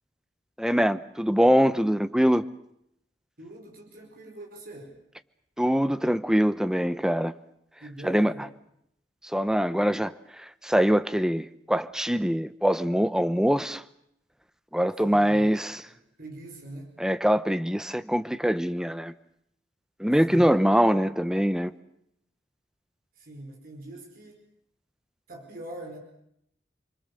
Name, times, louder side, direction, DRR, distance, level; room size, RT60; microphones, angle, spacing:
voice 1, 0.6-2.4 5.6-7.3 8.0-8.3 9.2-13.8 14.7-15.8 17.0-19.1 20.0-21.7, equal, 5° right, 0.9 m, -23 dB
voice 2, 3.4-5.0 7.8-8.5 15.0-16.9 20.2-20.6 23.1-24.4 25.3-26.0, right 1 dB, 55° right, 5.0 m, -43 dB
29.0 x 22.5 x 6.8 m
head